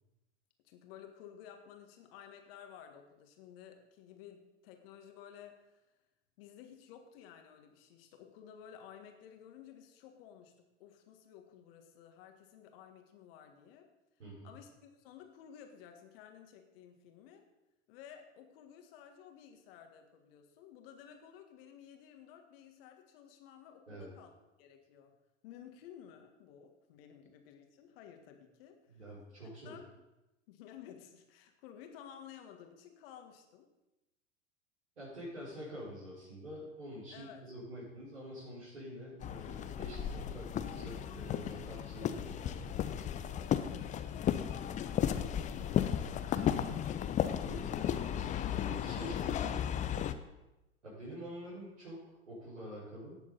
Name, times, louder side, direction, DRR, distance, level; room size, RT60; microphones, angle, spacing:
voice 1, 0.6-5.8 6.4-10.5 10.8-13.9 14.4-17.4 17.9-25.1 25.4-29.0 29.6-29.9 30.5-33.7 37.1-37.4 43.3-46.2 48.9-49.5, left 9 dB, 50° left, 5 dB, 1.8 m, -54 dB
voice 2, 14.2-14.6 23.9-24.1 28.9-29.8 35.0-42.7 46.2-47.1 47.4-49.6 50.8-53.2, equal, 75° right, -10 dB, 5.1 m, -47 dB
sound 1, 39.2-50.1, left 9 dB, 20° left, 0.6 m, -35 dB
17.5 x 7.1 x 4.1 m, 0.98 s
figure-of-eight pair, 90°, 36 cm